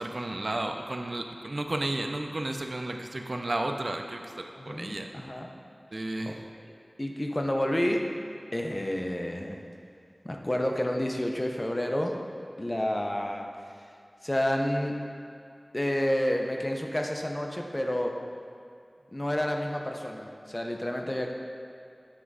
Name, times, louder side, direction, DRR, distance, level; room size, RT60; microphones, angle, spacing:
voice 1, 0.0-5.1 5.9-6.4, right 2 dB, 60° right, 4 dB, 0.4 m, -33 dB
voice 2, 4.6-5.5 6.3-6.4 7.0-8.0 8.5-9.6 10.2-12.2 12.6-13.5 14.2-15.0 15.7-18.1 19.1-21.3, left 1 dB, 30° left, 2 dB, 0.6 m, -29 dB
7.4 x 3.4 x 4.8 m, 2.5 s
wide cardioid pair, 60°, 0 cm